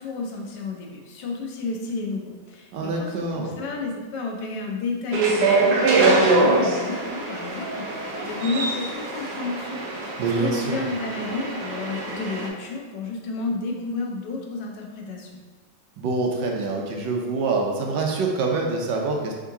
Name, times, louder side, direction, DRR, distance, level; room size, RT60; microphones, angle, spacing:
voice 1, 0.0-15.4, left 3 dB, 75° left, 1 dB, 1.3 m, -31 dB
voice 2, 2.7-3.6 10.2-10.8 16.0-19.3, right 3 dB, 85° right, 1 dB, 1.4 m, -25 dB
sound 1, 5.1-12.5, right 3 dB, 70° right, 1.2 m, -23 dB
4.9 x 3.7 x 2.7 m, 1.4 s
omnidirectional pair, 1.9 m